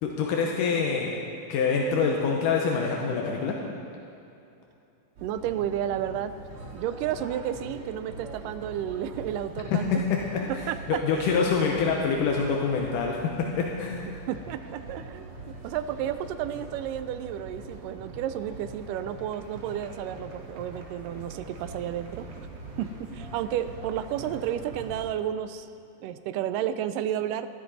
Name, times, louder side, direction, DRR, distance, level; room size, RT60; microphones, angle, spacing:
voice 1, 0.0-1.1 1.5-3.6 9.7-10.4 10.9-14.1, left 5 dB, 80° left, -1 dB, 2.5 m, -26 dB
sound 1, 5.2-25.1, right 2 dB, 55° right, 2.1 m, -43 dB
voice 2, 5.2-6.3 6.7-10.0 10.5-11.5 14.1-22.5 22.8-25.7 26.0-27.5, right 10 dB, 85° right, 11 dB, 2.2 m, -32 dB
13.0 x 12.5 x 4.1 m, 2.7 s
omnidirectional pair, 3.8 m